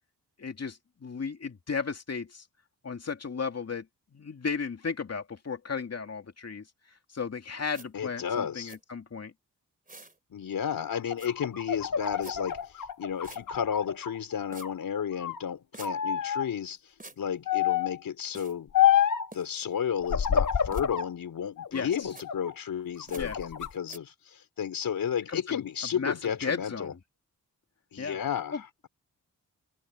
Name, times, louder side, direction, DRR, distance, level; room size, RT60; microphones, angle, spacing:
voice 1, 0.4-2.5 2.8-6.7 7.1-9.3 21.7-22.1 23.1-23.4 25.3-25.6 26.0-27.0 28.0-28.2 28.5-28.6, left 5 dB, 50° left, 2.6 m, -35 dB
sound 1, 7.7-7.9 8.7-8.8 9.9-10.2 11.2-11.3 12.2-12.4 13.2-13.4 14.5-14.7 15.7-15.9 17.0-17.2 18.3-18.5 19.3-19.6 20.7-20.8 22.1-22.3 23.1-23.2 23.9-24.0, right 2 dB, 25° right, 3.1 m, -47 dB
voice 2, 7.9-8.7 10.3-12.6 13.0-16.8 17.2-18.7 19.3-26.9 27.9-28.9, left 8 dB, 85° left, 4.6 m, -32 dB
sound 2, 10.9-14.2 14.5-15.4 15.8-16.5 17.5-18.0 18.7-19.3 20.0-21.1 21.6-22.5 23.0-23.7, left 9 dB, 65° left, 1.6 m, -28 dB
cardioid pair, 70°, 33 cm